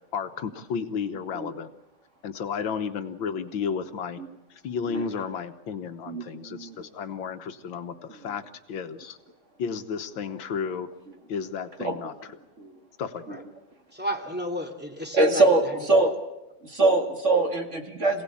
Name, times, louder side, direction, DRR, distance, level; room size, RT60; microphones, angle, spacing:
voice 1, 0.1-1.7 2.2-4.2 4.6-8.4 8.7-9.2 9.6-10.9 11.3-12.1 13.0-13.4, left 6 dB, 85° left, 9 dB, 1.9 m, -32 dB
voice 2, 6.1-6.8 11.8-12.0 12.6-12.7 13.3-13.4 15.1-15.6 15.9-16.1 16.6-18.2, right 2 dB, 40° right, 4 dB, 2.3 m, -23 dB
voice 3, 13.9-16.0, equal, 5° right, 2 dB, 2.6 m, -33 dB
26.5 x 17.5 x 8.6 m, 0.95 s
omnidirectional pair, 2.1 m